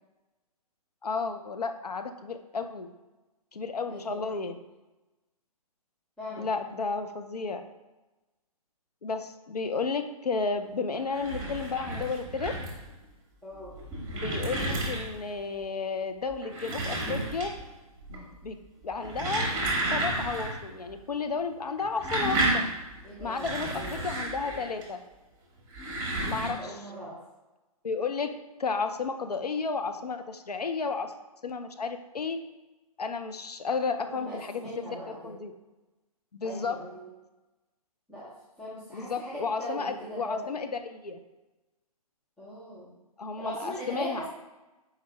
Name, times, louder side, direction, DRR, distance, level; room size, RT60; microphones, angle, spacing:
voice 1, 1.0-2.9 3.5-4.5 6.4-7.6 9.0-12.6 14.1-17.5 18.1-18.6 18.8-19.5 19.9-22.6 23.2-25.0 26.2-26.8 27.8-28.3 28.6-31.1 31.4-32.4 33.0-34.6 35.2-35.5 36.3-36.8 38.9-41.2 43.2-44.3, left 4 dB, 80° left, 7 dB, 0.5 m, -32 dB
voice 2, 3.9-4.2 6.2-6.5 13.4-13.7 23.0-24.0 26.6-27.2 34.0-35.4 36.4-37.1 38.1-38.3 38.6-40.6 42.4-42.9 43.4-44.3, equal, 5° left, -9 dB, 0.4 m, -40 dB
sound 1, 10.9-12.9 13.6-15.3 16.3-17.7 18.0-18.5 18.9-20.6 20.9-21.0 21.7-24.8 25.6-26.5, right 2 dB, 20° right, 1.3 m, -31 dB
4.7 x 3.3 x 3.2 m, 1.1 s
figure-of-eight pair, 130°, 20 cm